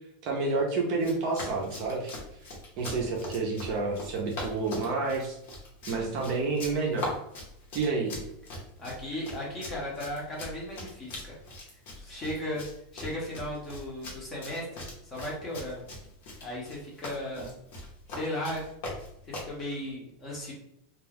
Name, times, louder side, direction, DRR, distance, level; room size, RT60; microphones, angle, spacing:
voice 1, 0.2-2.1 2.8-5.4 5.9-7.1 7.7-8.2, right 3 dB, 35° right, 0 dB, 0.5 m, -29 dB
Run, 0.9-19.6, left 2 dB, 50° left, 0.9 m, -41 dB
voice 2, 8.8-11.2 11.9-15.8 16.4-17.5 18.1-18.7 19.2-20.5, left 1 dB, 15° left, -3 dB, 0.7 m, -36 dB
2.3 x 2.2 x 3.3 m, 0.78 s
supercardioid pair, 180°, 0 cm